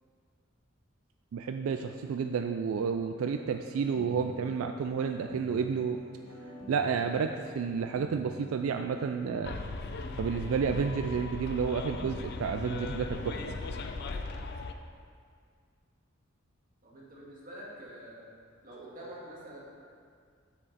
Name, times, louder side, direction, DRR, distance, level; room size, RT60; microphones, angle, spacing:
voice 1, 1.3-6.0 6.7-9.6 10.2-13.6, right 6 dB, 85° right, 6 dB, 0.3 m, -31 dB
sound 1, 3.3-13.9, left 1 dB, 70° left, 1.5 m, -47 dB
Bus, 9.4-14.7, left 3 dB, 50° left, 0.4 m, -38 dB
voice 2, 16.8-18.3 18.6-19.6, right 1 dB, 40° right, -5 dB, 1.8 m, -46 dB
7.4 x 6.5 x 4.0 m, 2.1 s
head